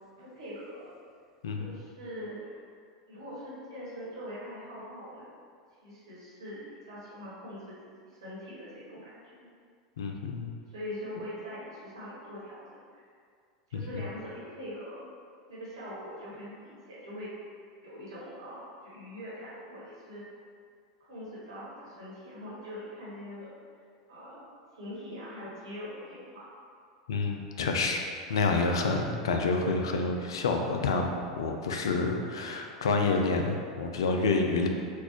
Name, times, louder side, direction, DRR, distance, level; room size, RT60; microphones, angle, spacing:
voice 1, 0.2-0.9 1.5-2.6 3.1-5.3 5.8-7.8 8.0-9.5 10.7-13.0 13.7-15.1 15.5-17.3 17.8-20.2 21.0-23.6 24.1-24.4 24.7-26.5, equal, 75° right, -8 dB, 1.3 m, -42 dB
voice 2, 1.4-1.8 10.0-10.5 13.7-14.1 27.1-34.7, left 3 dB, 70° left, 3 dB, 0.4 m, -28 dB
3.9 x 2.4 x 2.9 m, 2.2 s
figure-of-eight pair, 85°, 3 cm